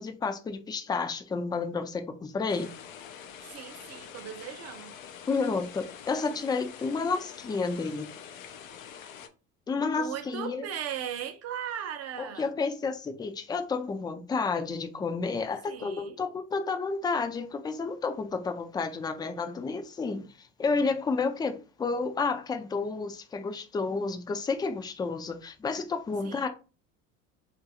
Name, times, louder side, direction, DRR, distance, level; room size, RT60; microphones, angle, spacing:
voice 1, 0.0-2.7 5.3-8.1 9.7-10.7 12.2-26.5, left 4 dB, 10° left, 0.4 m, -31 dB
sound 1, 2.5-9.3, left 8 dB, 85° left, 0.6 m, -46 dB
voice 2, 3.4-4.9 9.8-12.5 15.7-16.2 26.2-26.5, right 9 dB, 40° right, 0.6 m, -38 dB
3.0 x 2.5 x 2.8 m
hypercardioid pair, 75°, 40 cm